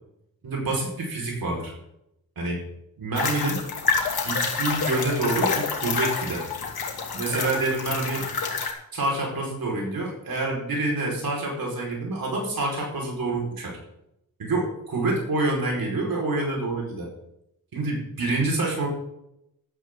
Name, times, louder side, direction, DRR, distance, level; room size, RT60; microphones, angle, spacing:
voice 1, 0.4-1.7 2.3-2.6 3.0-3.6 4.2-6.4 7.1-8.2 8.9-13.8 14.4-17.1 17.7-18.9, right 2 dB, 70° right, -1 dB, 5.2 m, -27 dB
sound 1, 3.1-8.7, left 5 dB, 85° left, 2.6 m, -28 dB
15.5 x 12.0 x 3.9 m, 0.80 s
wide cardioid pair, 105°, 37 cm